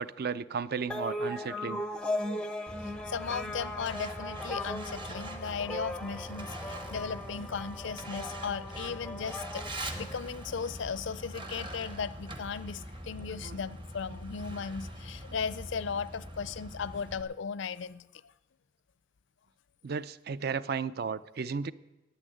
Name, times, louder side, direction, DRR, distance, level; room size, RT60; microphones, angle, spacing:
voice 1, 0.0-1.8 13.2-13.6 19.8-21.7, right 5 dB, 50° right, 17 dB, 0.4 m, -34 dB
sound 1, 0.9-10.7, left 1 dB, 5° left, 0.5 m, -38 dB
Truck, 2.7-17.2, right 1 dB, 25° right, 0.9 m, -43 dB
voice 2, 2.8-18.0, left 6 dB, 60° left, 18 dB, 0.4 m, -37 dB
10.0 x 8.4 x 9.1 m, 1.0 s
head